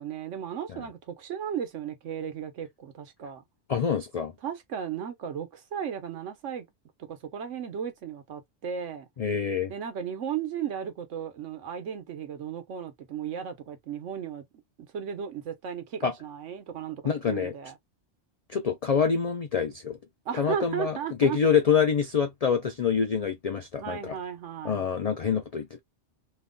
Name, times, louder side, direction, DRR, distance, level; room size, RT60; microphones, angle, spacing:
voice 1, 0.0-3.4 4.4-6.7 7.1-9.1 9.7-14.4 14.9-17.8 20.2-21.4 23.8-24.9, right 8 dB, 85° right, 1.2 m, -35 dB
voice 2, 3.7-4.3 9.2-9.7 16.0-16.1 17.0-17.5 18.5-20.0 20.4-24.1 24.6-25.8, left 6 dB, 70° left, 0.3 m, -26 dB
2.9 x 2.1 x 3.7 m
omnidirectional pair, 1.2 m